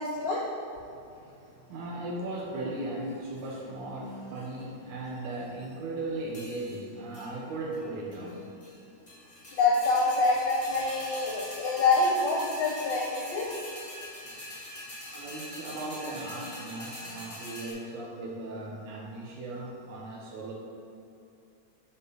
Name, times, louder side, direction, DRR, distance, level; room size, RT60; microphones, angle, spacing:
voice 1, 0.0-0.4 9.6-13.5, left 3 dB, 75° left, -3 dB, 1.5 m, -26 dB
voice 2, 0.5-8.8 9.1-9.2 9.9-10.1 10.7-11.5 12.6-12.7 13.1-13.2 15.1-20.5, right 2 dB, 70° right, -3 dB, 1.9 m, -38 dB
sound 1, 3.1-3.6 4.1-4.6 5.1-5.7 6.3-6.8 7.1-7.3 7.7-7.8 8.1-8.8 9.1-17.7, equal, 50° left, 0.4 m, -43 dB
8.1 x 3.7 x 3.9 m, 2.6 s
omnidirectional pair, 3.5 m